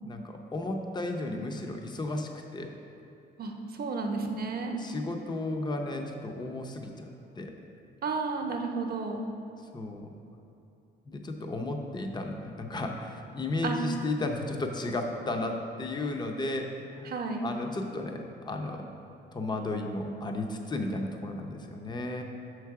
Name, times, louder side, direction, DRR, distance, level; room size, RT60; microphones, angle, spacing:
voice 1, 0.0-2.7 4.8-7.1 7.3-7.6 9.7-10.1 11.1-17.1 17.4-18.8 19.3-22.2, left 2 dB, 20° left, 3 dB, 0.6 m, -34 dB
voice 2, 3.8-4.8 8.0-9.3 13.6-13.8 17.1-17.5, right 4 dB, 50° right, 3 dB, 0.8 m, -32 dB
6.4 x 4.6 x 4.7 m, 2.7 s
cardioid pair, 90°, 20 cm